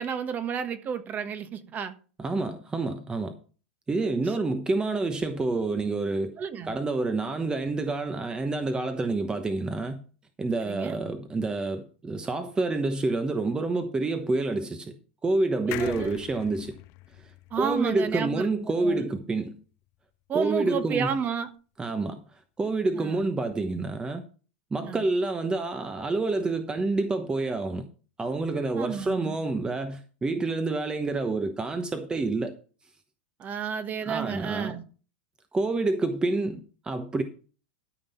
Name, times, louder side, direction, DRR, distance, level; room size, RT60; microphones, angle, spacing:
voice 1, 0.0-1.9 6.4-6.7 10.6-11.0 15.7-16.1 17.5-18.4 18.8-19.0 20.3-21.5 22.9-23.3 24.8-25.0 28.8-29.4 33.4-34.8, right 7 dB, 30° right, 1.3 m, -31 dB
voice 2, 2.2-3.4 3.9-6.3 6.6-10.0 10.4-14.9 15.2-16.7 17.2-19.6 20.3-21.1 21.8-24.2 24.7-27.8 28.2-32.5 34.0-34.8 35.5-37.2, right 3 dB, 15° right, 1.0 m, -28 dB
sound 1, 15.7-19.2 19.6-19.7 19.9-20.0, left 19 dB, 45° left, 0.5 m, -42 dB
13.0 x 5.4 x 5.6 m
hypercardioid pair, 110°, 6 cm